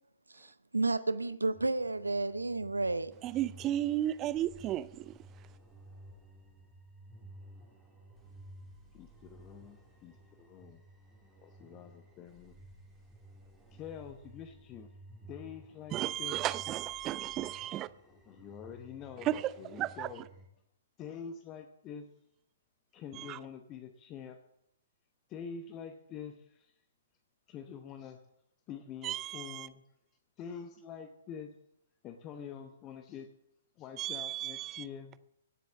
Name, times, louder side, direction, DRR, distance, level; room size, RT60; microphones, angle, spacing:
voice 1, 0.3-3.1, right 2 dB, 80° right, 0.6 m, -32 dB
sound 1, 1.5-20.5, right 1 dB, 5° right, 3.3 m, -55 dB
voice 2, 3.2-5.1 15.9-17.9 19.2-20.1 23.1-23.4 29.0-29.7 34.0-34.8, right 13 dB, 25° right, 0.5 m, -34 dB
voice 3, 8.9-10.8 11.4-12.5 13.7-14.9 15.3-16.4 18.0-19.3 19.6-20.2 21.0-22.1 22.9-24.4 25.3-26.7 27.5-28.2 28.7-29.8 30.4-31.5 32.0-33.3 33.8-35.1, left 7 dB, 25° left, 0.9 m, -46 dB
17.0 x 7.7 x 7.2 m
figure-of-eight pair, 120°, 0 cm